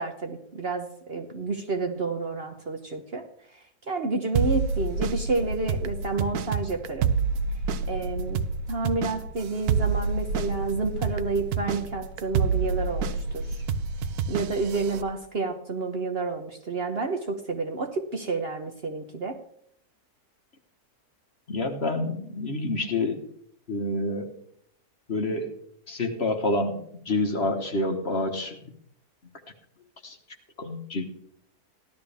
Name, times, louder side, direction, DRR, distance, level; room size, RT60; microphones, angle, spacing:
voice 1, 0.0-3.3 3.5-7.1 7.9-8.4 8.7-13.6 14.3-19.4, right 3 dB, 45° right, 5 dB, 1.1 m, -30 dB
sound 1, 4.4-15.0, right 5 dB, 75° right, 1.2 m, -28 dB
voice 2, 21.5-23.3 23.7-24.3 25.1-25.5 25.9-26.8 27.0-28.6 30.0-30.2 30.6-31.0, left 2 dB, 45° left, 5 dB, 1.4 m, -28 dB
15.5 x 12.0 x 3.5 m, 0.68 s
omnidirectional pair, 1.7 m